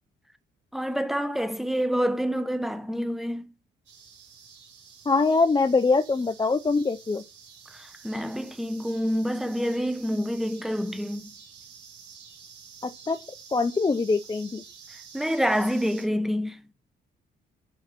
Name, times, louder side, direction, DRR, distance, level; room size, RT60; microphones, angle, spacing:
voice 1, 0.7-3.5 7.7-11.3 15.1-16.6, equal, ahead, 1.2 m, -27 dB
sound 1, 3.8-16.0, right 6 dB, 75° right, 4.6 m, -49 dB
voice 2, 5.1-7.2 12.8-13.2 13.5-14.6, left 4 dB, 20° left, 0.7 m, -23 dB
8.3 x 6.5 x 6.0 m
cardioid pair, 90°, 20 cm